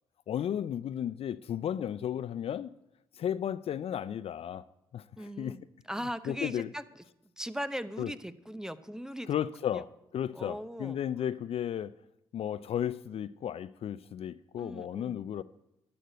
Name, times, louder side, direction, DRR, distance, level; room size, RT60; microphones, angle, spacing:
voice 1, 0.3-2.7 3.2-4.7 4.9-5.6 6.3-6.7 8.0-8.1 9.3-9.9 10.1-11.9 12.3-15.4, left 10 dB, 55° left, 0.4 m, -34 dB
voice 2, 5.2-5.6 5.9-6.8 7.4-9.3 9.7-9.8 10.3-11.0 14.6-15.2, equal, 5° right, 0.7 m, -39 dB
10.0 x 6.5 x 7.8 m
hypercardioid pair, 50°, 12 cm